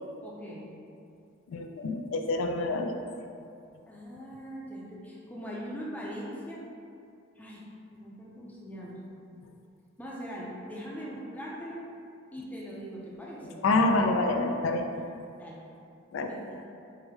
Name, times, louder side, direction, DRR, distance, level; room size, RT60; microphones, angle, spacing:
voice 1, 0.2-0.7 3.9-6.6 7.4-9.0 10.0-11.8 12.3-13.6 14.9-15.0 15.4-15.6 16.3-16.7, equal, 10° left, -5 dB, 0.4 m, -41 dB
voice 2, 1.5-2.9 13.6-14.9 16.1-16.4, left 2 dB, 85° left, 4 dB, 0.3 m, -27 dB
4.6 x 2.0 x 3.2 m, 2.5 s
head